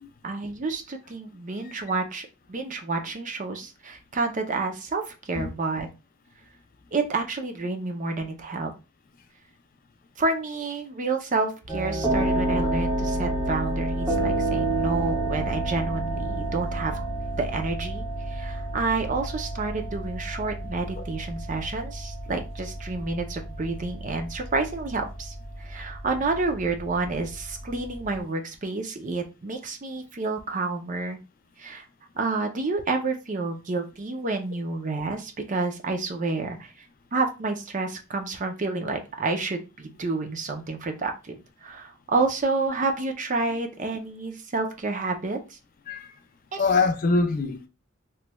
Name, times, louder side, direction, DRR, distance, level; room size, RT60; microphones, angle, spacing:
voice 1, 0.2-5.9 6.9-8.7 10.2-17.0 17.4-25.3 25.6-31.2 31.6-31.8 32.2-36.7 37.1-45.6 46.5-46.6, right 3 dB, 40° right, 0.6 m, -29 dB
sound 1, 11.7-28.2, right 2 dB, 10° right, 1.1 m, -30 dB
voice 2, 46.6-47.7, left 4 dB, 45° left, 0.4 m, -24 dB
3.1 x 3.1 x 2.2 m
head